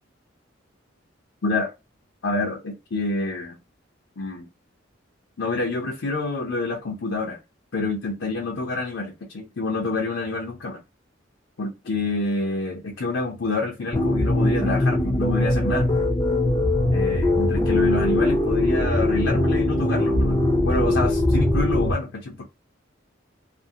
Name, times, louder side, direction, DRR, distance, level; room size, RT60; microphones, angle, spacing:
voice 1, 2.2-3.6 4.2-4.5 5.4-7.4 7.7-10.8 11.6-15.9 16.9-20.4 20.6-22.4, left 2 dB, 70° left, 0.6 m, -27 dB
sound 1, 13.9-21.9, left 1 dB, 20° left, 0.5 m, -21 dB
2.5 x 2.5 x 2.7 m
head